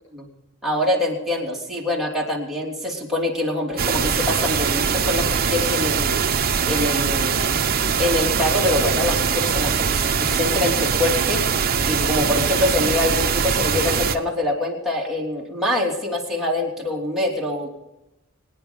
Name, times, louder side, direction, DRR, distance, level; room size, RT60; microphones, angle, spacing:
voice 1, 0.6-6.1 6.6-7.4 8.0-11.4 11.9-17.7, left 1 dB, ahead, -4 dB, 3.2 m, -24 dB
sound 1, 3.8-14.2, right 6 dB, 45° right, 0.9 m, -22 dB
24.0 x 9.8 x 5.4 m, 0.98 s
head